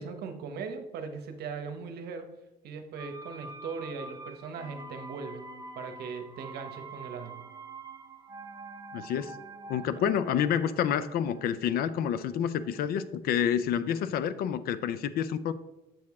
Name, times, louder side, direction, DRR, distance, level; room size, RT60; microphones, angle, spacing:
voice 1, 0.0-2.3 2.6-5.5 5.7-7.4 10.0-10.1, right 5 dB, 70° right, 7 dB, 0.9 m, -39 dB
sound 1, 3.0-12.7 13.0-13.1, right 3 dB, 20° right, 0.5 m, -46 dB
voice 2, 8.9-9.3 9.7-15.5, left 9 dB, 65° left, 15 dB, 0.4 m, -28 dB
7.5 x 4.6 x 3.5 m, 0.97 s
cardioid pair, 110°, 17 cm